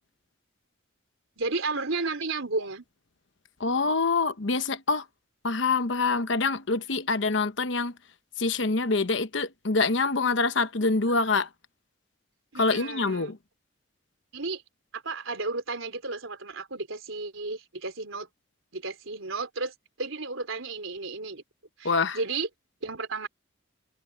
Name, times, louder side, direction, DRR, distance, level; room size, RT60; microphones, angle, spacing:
voice 1, 1.4-2.8 12.5-13.4 14.3-14.6 14.9-18.3 18.7-21.4 21.8-22.5 22.8-23.3, right 3 dB, 90° right, 3.8 m, -33 dB
voice 2, 3.6-5.0 5.4-7.9 8.4-11.5 12.6-13.4 21.8-22.2, left 3 dB, 65° left, 1.0 m, -25 dB
head